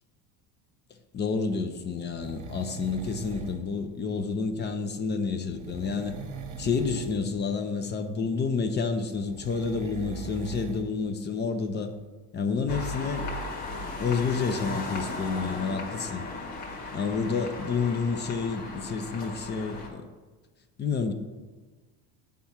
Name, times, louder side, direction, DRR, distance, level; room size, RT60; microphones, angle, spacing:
voice 1, 1.1-6.2 6.6-11.9 12.3-13.3 14.0-16.2 16.9-20.0 20.8-21.1, left 5 dB, 25° left, 8 dB, 0.5 m, -29 dB
sound 1, 2.2-3.7 5.5-7.2 9.2-10.9 11.3-11.4, right 5 dB, 45° right, 1.0 m, -40 dB
sound 2, 12.7-19.9, left 3 dB, 60° left, 1.8 m, -36 dB
7.6 x 3.6 x 5.7 m, 1.3 s
supercardioid pair, 120°, 41 cm